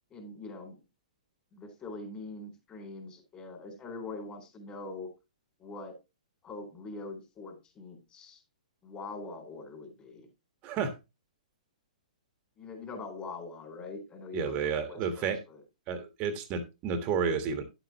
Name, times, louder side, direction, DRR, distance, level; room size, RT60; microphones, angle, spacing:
voice 1, 0.1-0.8 1.5-5.1 5.6-6.0 6.4-8.4 8.8-10.3 12.6-15.6, left 3 dB, 20° left, 3.9 m, -43 dB
voice 2, 10.6-11.0 14.3-15.4 15.9-17.6, right 6 dB, 30° right, 1.5 m, -31 dB
11.0 x 8.0 x 2.9 m
hypercardioid pair, 140°, 4 cm